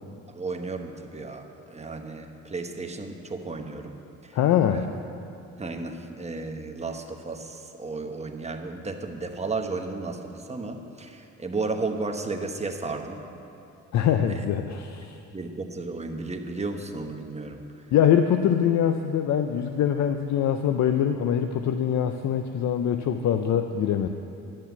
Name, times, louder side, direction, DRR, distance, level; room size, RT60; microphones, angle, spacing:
voice 1, 0.3-4.0 4.2-4.4 4.7-4.9 5.6-13.2 14.2-14.4 15.3-17.8, right 3 dB, 20° right, 4 dB, 1.1 m, -34 dB
voice 2, 4.3-4.9 13.9-15.2 17.9-24.1, left 9 dB, 65° left, 8 dB, 0.6 m, -23 dB
11.0 x 7.4 x 8.2 m, 2.7 s
cardioid pair, 90°, 30 cm